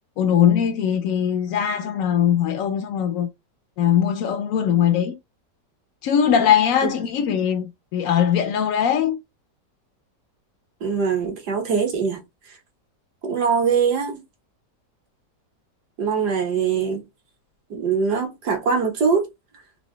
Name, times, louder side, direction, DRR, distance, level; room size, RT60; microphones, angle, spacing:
voice 1, 0.2-3.3 3.8-5.1 6.0-9.2, left 9 dB, 70° left, 0.8 m, -20 dB
voice 2, 10.8-12.2 13.2-14.2 16.0-17.0 17.7-19.3, right 6 dB, 70° right, 1.7 m, -22 dB
4.0 x 2.7 x 3.2 m
omnidirectional pair, 1.9 m